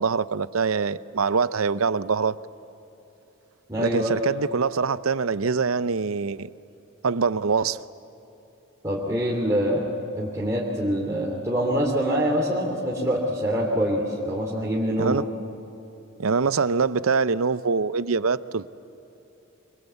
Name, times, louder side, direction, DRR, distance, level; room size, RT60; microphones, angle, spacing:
voice 1, 0.0-2.3 3.8-6.5 7.0-7.8 15.0-15.2 16.2-18.7, right 5 dB, 85° right, 15 dB, 0.7 m, -24 dB
voice 2, 3.7-4.2 8.8-9.9 10.1-15.2, equal, 15° right, -4 dB, 2.9 m, -25 dB
26.0 x 26.0 x 8.2 m, 2.9 s
head